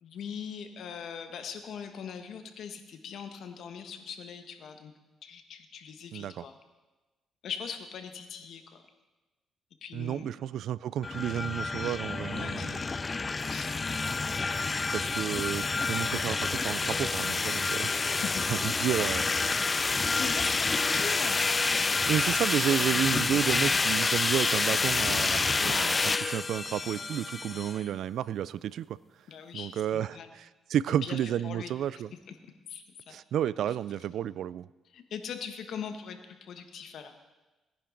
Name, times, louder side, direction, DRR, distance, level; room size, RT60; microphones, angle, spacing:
voice 1, 0.0-4.9 5.2-6.6 7.4-8.8 9.8-10.3 12.3-12.9 13.5-13.8 17.8-18.5 20.0-22.3 29.3-30.3 31.0-31.2 31.4-31.7 32.3-32.4 32.7-33.2 33.7-33.8 34.9-37.2, left 7 dB, 70° left, 7 dB, 1.3 m, -41 dB
voice 2, 6.1-6.4 9.9-12.8 14.9-17.9 18.5-19.7 22.1-29.0 29.5-32.1 33.1-34.7, right 10 dB, 75° right, 19 dB, 0.3 m, -31 dB
sound 1, 11.0-27.8, left 4 dB, 30° left, 0.3 m, -28 dB
18.0 x 10.5 x 3.9 m, 1.1 s
cardioid pair, 80°, 0 cm